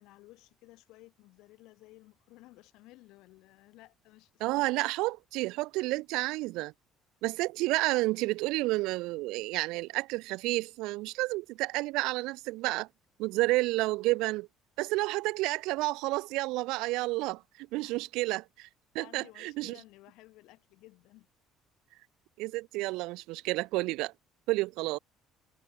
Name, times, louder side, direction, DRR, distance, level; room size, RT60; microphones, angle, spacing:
voice 1, 0.0-4.8 13.6-13.7 17.8-18.0 19.0-21.3, left 19 dB, 80° left, 7.1 m, -56 dB
voice 2, 4.4-6.7 7.2-12.9 13.2-14.5 14.8-18.7 18.9-19.8 22.4-24.1 24.5-25.0, right 21 dB, 85° right, 1.4 m, -30 dB
cardioid pair, 130°, 0 cm